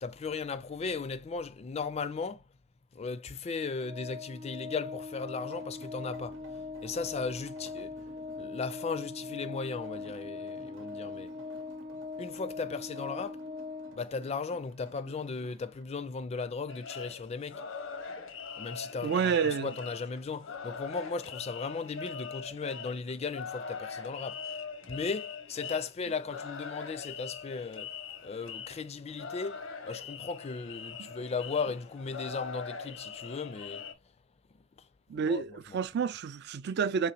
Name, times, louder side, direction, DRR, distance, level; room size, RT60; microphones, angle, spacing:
voice 1, 0.0-2.4 2.9-8.0 8.4-11.3 12.2-13.4 13.9-17.6 18.6-27.9 28.2-33.9 34.5-34.9 35.1-35.8, left 4 dB, 35° left, 0.4 m, -37 dB
Organ, 3.8-14.5, left 4 dB, 30° right, 0.8 m, -41 dB
sound 1, 5.4-15.8, right 3 dB, 90° right, 0.9 m, -55 dB
sound 2, 16.7-33.9, left 5 dB, 90° left, 0.8 m, -42 dB
voice 2, 19.0-19.7 31.0-31.1 35.1-37.1, right 6 dB, 55° right, 0.3 m, -29 dB
4.9 x 3.2 x 2.9 m
head